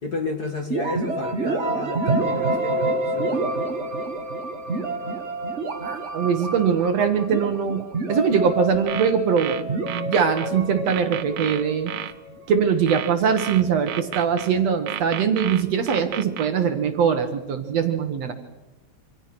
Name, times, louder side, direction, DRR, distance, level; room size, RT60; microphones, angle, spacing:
voice 1, 0.0-3.7, left 3 dB, 35° left, 5 dB, 2.0 m, -32 dB
sound 1, 0.7-12.4, right 2 dB, 35° right, 1.3 m, -28 dB
voice 2, 5.8-7.8 8.1-11.9 12.5-18.3, right 7 dB, 65° right, 7 dB, 2.4 m, -22 dB
sound 2, 8.7-10.5 10.9-12.1 12.9-14.5 14.9-16.5, right 12 dB, 85° right, 2.4 m, -32 dB
27.0 x 26.0 x 6.1 m, 1.0 s
omnidirectional pair, 3.3 m